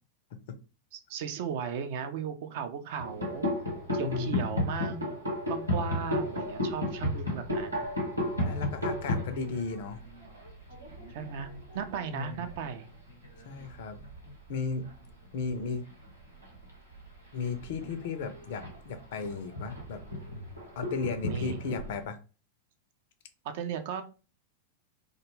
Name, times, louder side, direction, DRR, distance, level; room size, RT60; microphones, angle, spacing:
voice 1, 0.9-3.5 3.9-5.2 5.5-7.9 11.1-11.5 11.7-12.9 21.3-21.6 23.4-24.0, right 7 dB, 50° right, 9 dB, 0.4 m, -36 dB
sound 1, 3.0-14.4 14.7-15.1 15.4-22.0, left 1 dB, 85° right, 0.9 m, -34 dB
voice 2, 4.0-4.4 8.4-10.0 12.1-12.4 13.4-14.0 14.5-14.9 15.3-15.8 17.3-20.0 20.8-22.2, left 5 dB, 55° left, 9 dB, 0.4 m, -35 dB
2.4 x 2.2 x 3.1 m, 0.34 s
figure-of-eight pair, 90°, 0 cm